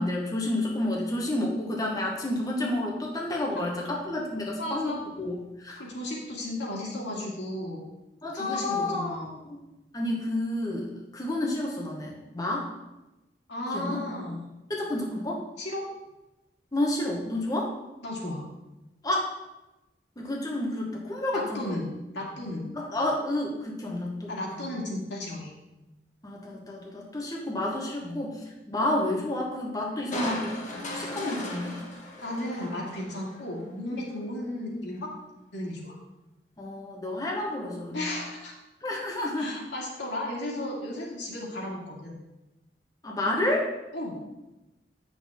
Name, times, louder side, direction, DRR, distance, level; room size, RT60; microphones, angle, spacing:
voice 1, 0.0-5.8 8.2-9.6 9.9-12.7 13.7-14.0 14.7-15.4 16.7-17.7 19.0-19.3 20.2-21.8 22.7-24.3 24.6-24.7 26.2-30.6 30.9-31.8 36.6-38.1 38.8-39.5 43.0-43.7, left 1 dB, 20° left, -2 dB, 1.0 m, -30 dB
voice 2, 4.6-5.0 5.8-7.8 8.3-9.3 13.5-14.4 15.6-15.8 18.0-18.4 21.3-22.7 24.3-25.5 28.0-28.2 32.2-35.1 35.5-36.0 37.9-38.5 39.4-42.2 43.9-44.2, left 1 dB, 90° left, -3 dB, 2.0 m, -34 dB
Crushing, 30.1-33.5 33.9-34.0, left 1 dB, 45° left, 1.3 m, -37 dB
7.8 x 6.3 x 3.5 m, 1.0 s
head